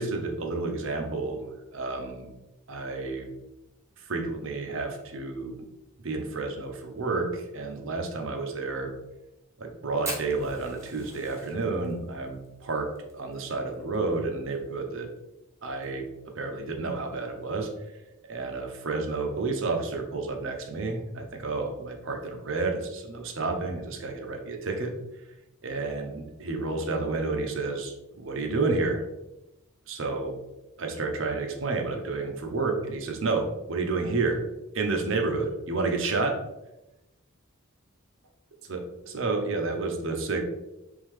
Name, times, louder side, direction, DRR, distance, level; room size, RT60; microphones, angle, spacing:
voice 1, 0.0-2.3 2.7-3.3 4.0-5.6 6.0-8.9 9.6-15.1 15.6-17.7 18.3-24.9 25.6-29.0 29.9-30.3 30.8-34.5 34.7-36.4 38.7-40.4, right 3 dB, 65° right, 3 dB, 0.7 m, -30 dB
Fire, 10.0-14.5 14.8-14.9 15.2-15.3 15.6-16.1 16.6-16.7 17.7-17.9, right 2 dB, 15° right, 0.8 m, -40 dB
3.7 x 3.4 x 3.2 m, 0.96 s
head